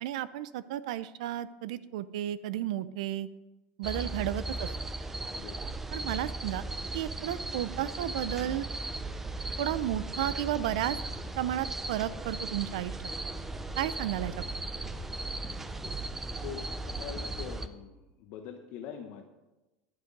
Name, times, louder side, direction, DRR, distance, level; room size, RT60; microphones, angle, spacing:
voice 1, 0.0-3.3 3.8-4.7 5.9-6.6 6.9-8.6 9.6-11.0 11.4-13.0 13.8-14.5, right 12 dB, 90° right, 16 dB, 0.5 m, -33 dB
sound 1, 3.8-17.7, right 2 dB, 10° right, 0.4 m, -37 dB
voice 2, 5.3-5.7 16.4-19.2, left 8 dB, 50° left, 5 dB, 0.8 m, -43 dB
sound 2, 7.7-17.4, left 2 dB, 20° left, 1.5 m, -51 dB
10.5 x 8.2 x 5.2 m, 1.1 s
cardioid pair, 170°, 4 cm